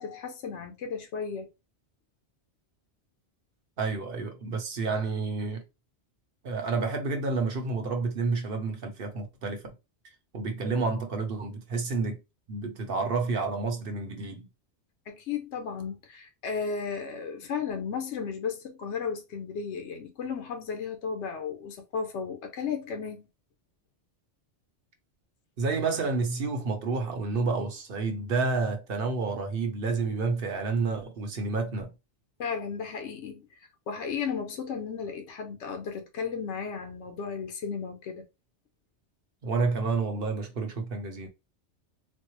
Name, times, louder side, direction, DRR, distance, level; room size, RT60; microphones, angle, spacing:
voice 1, 0.0-1.5 15.1-23.3 32.4-38.2, left 6 dB, 80° left, 1.0 m, -34 dB
voice 2, 3.8-5.6 6.4-9.7 10.3-12.2 12.5-14.5 25.6-31.9 39.4-41.3, right 4 dB, 55° right, 0.9 m, -29 dB
4.2 x 2.0 x 3.0 m
omnidirectional pair, 1.2 m